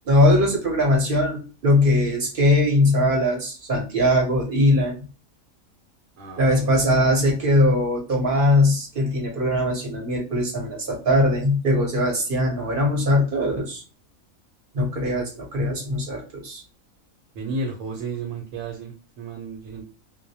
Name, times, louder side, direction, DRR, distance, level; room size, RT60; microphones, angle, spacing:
voice 1, 0.1-5.0 6.4-13.8 14.7-16.6, left 1 dB, 50° right, 0 dB, 0.8 m, -20 dB
voice 2, 6.2-7.0 17.4-19.8, right 3 dB, 75° right, 2 dB, 0.9 m, -33 dB
2.2 x 2.1 x 2.6 m, 0.33 s
omnidirectional pair, 1.4 m